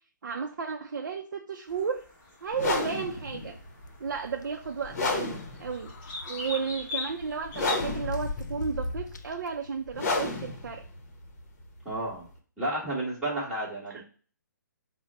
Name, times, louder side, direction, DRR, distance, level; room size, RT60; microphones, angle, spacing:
voice 1, 0.2-2.1 2.4-3.6 4.0-5.9 6.3-10.8 13.3-13.5 13.9-14.0, right 6 dB, 70° right, 3 dB, 0.5 m, -33 dB
sound 1, 1.7-7.8, left 4 dB, 20° left, 1.1 m, -41 dB
sound 2, 2.5-3.5 3.9-4.0 4.2-4.5 5.6-6.7 7.2-9.5, left 3 dB, 65° left, 0.5 m, -38 dB
sound 3, 2.5-12.4, left 2 dB, 50° left, 0.9 m, -33 dB
voice 2, 11.8-12.3 12.6-14.0, right 1 dB, ahead, -9 dB, 1.3 m, -31 dB
4.1 x 2.1 x 4.1 m, 0.40 s
hypercardioid pair, 160°, 10 cm